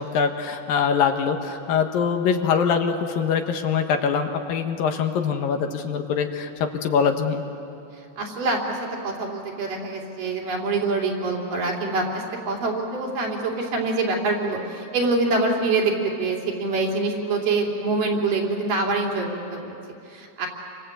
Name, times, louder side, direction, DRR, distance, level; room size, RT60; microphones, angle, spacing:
voice 1, 0.0-7.4, left 6 dB, 75° left, 5 dB, 3.0 m, -23 dB
voice 2, 8.2-19.8 20.1-20.5, right 3 dB, 65° right, -1 dB, 4.8 m, -25 dB
29.0 x 25.5 x 8.2 m, 2.7 s
omnidirectional pair, 4.3 m